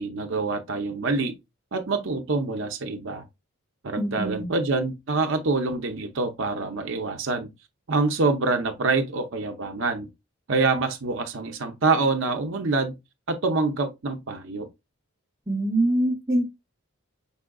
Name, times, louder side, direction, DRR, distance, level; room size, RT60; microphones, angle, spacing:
voice 1, 0.0-1.4 1.7-3.3 3.8-7.5 7.9-10.1 10.5-13.0 13.3-14.7, right 3 dB, 60° right, 0.6 m, -26 dB
voice 2, 4.0-4.5 15.5-16.5, right 1 dB, 10° right, 0.8 m, -24 dB
5.5 x 3.7 x 2.2 m
head